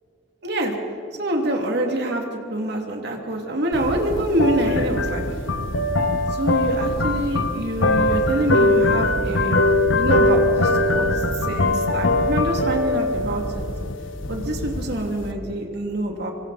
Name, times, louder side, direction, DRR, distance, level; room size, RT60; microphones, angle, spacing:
voice 1, 0.4-0.7 1.2-5.2 6.3-9.6 9.9-11.1 11.5-13.6 14.3-16.3, right 1 dB, 60° right, 2 dB, 2.8 m, -25 dB
sound 1, 3.7-15.3, left 2 dB, 90° left, 1.3 m, -22 dB
25.0 x 25.0 x 4.2 m, 2.6 s
head